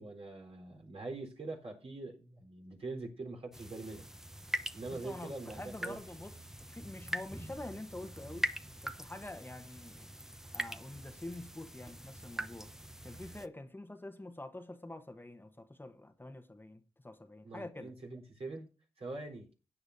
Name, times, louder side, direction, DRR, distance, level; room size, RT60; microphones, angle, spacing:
voice 1, 0.0-4.1 4.7-6.0 17.4-18.7 19.0-19.5, right 2 dB, 65° right, 4.0 m, -43 dB
sound 1, 3.5-13.5, equal, 5° right, 0.8 m, -43 dB
voice 2, 4.9-8.5 8.8-10.1 10.5-12.7 13.0-17.9, left 2 dB, 20° left, 1.1 m, -46 dB
16.5 x 8.8 x 2.7 m
cardioid pair, 50°, 11 cm